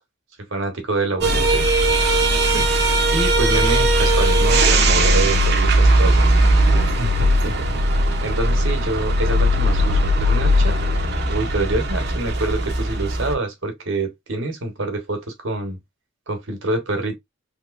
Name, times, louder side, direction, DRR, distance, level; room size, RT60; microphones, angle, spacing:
voice 1, 0.5-1.7 2.5-2.7 3.1-6.3 7.0-7.8 8.2-10.7 11.3-15.8 16.3-17.2, right 2 dB, 80° right, 1.4 m, -26 dB
sound 1, 1.2-13.3, right 1 dB, 55° right, 0.8 m, -18 dB
3.5 x 3.0 x 2.5 m
head